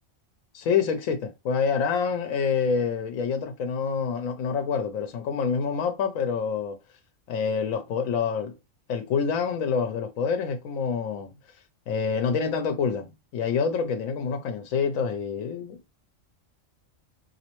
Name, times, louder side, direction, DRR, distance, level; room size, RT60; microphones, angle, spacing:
voice 1, 0.5-6.8 7.3-8.5 8.9-11.3 11.9-15.9, left 6 dB, 85° left, 1.0 m, -27 dB
4.1 x 2.8 x 2.9 m
omnidirectional pair, 1.4 m